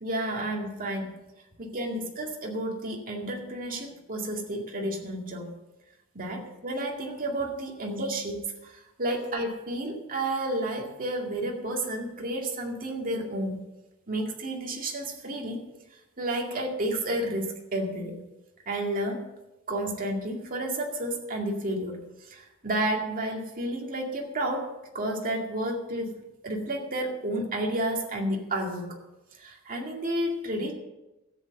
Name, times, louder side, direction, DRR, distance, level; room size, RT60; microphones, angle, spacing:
voice 1, 0.0-1.1 1.6-5.5 6.2-8.4 9.0-13.5 14.1-15.6 16.2-18.2 18.7-19.2 19.7-22.0 22.3-24.7 24.9-26.1 26.4-29.0 29.4-30.7, right 1 dB, 40° right, 0 dB, 2.2 m, -31 dB
13.0 x 8.4 x 6.6 m, 1.0 s
head